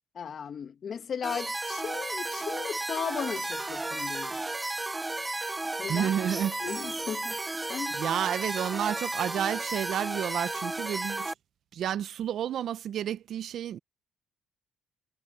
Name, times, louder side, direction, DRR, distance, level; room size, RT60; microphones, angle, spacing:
voice 1, 0.2-4.4 5.8-6.1 6.6-7.4 7.7-8.0, left 7 dB, 55° left, 1.7 m, -36 dB
sound 1, 1.2-11.3, right 2 dB, 15° right, 0.6 m, -33 dB
voice 2, 5.9-6.8 7.9-11.3 11.7-13.8, right 10 dB, 70° right, 0.6 m, -31 dB
cardioid pair, 90°, 0 cm